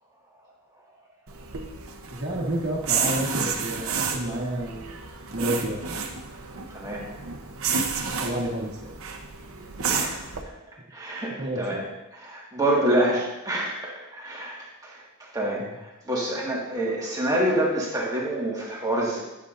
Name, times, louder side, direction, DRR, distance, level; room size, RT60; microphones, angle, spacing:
sound 1, 1.3-10.4, right 5 dB, 70° right, 0.8 m, -31 dB
voice 1, 2.1-5.0 5.3-6.0 8.1-8.9 11.4-11.8 15.6-15.8, right 1 dB, 55° right, -3 dB, 1.4 m, -30 dB
voice 2, 6.7-7.1 9.9-10.2 10.9-11.8 12.1-19.2, right 1 dB, 15° right, -4 dB, 1.8 m, -27 dB
10.0 x 7.3 x 2.6 m, 0.99 s
head